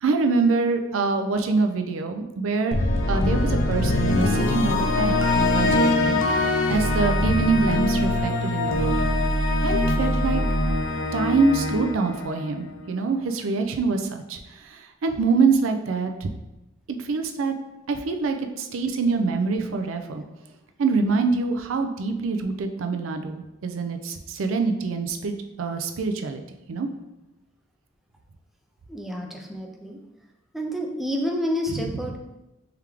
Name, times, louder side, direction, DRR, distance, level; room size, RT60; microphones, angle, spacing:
voice 1, 0.0-2.8 3.1-9.1 9.6-10.4 11.1-16.3 17.0-17.5 17.9-20.2 20.8-26.4 26.7-26.9 31.7-31.8, right 4 dB, 80° right, 5 dB, 0.4 m, -25 dB
sound 1, 2.7-12.9, left 1 dB, 70° left, 0.5 m, -23 dB
voice 2, 28.9-30.0 30.5-32.2, equal, ahead, 1 dB, 0.4 m, -29 dB
3.5 x 3.3 x 3.3 m, 0.97 s
head